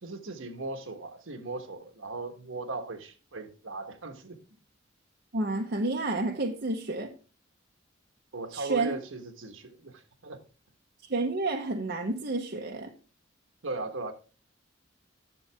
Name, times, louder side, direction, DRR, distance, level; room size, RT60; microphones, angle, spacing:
voice 1, 0.0-4.4 8.3-10.4 13.6-14.1, right 3 dB, 80° right, 1.3 m, -38 dB
voice 2, 5.3-7.1 8.5-8.9 11.1-12.9, right 2 dB, 55° right, 1.0 m, -30 dB
10.5 x 6.9 x 3.4 m
head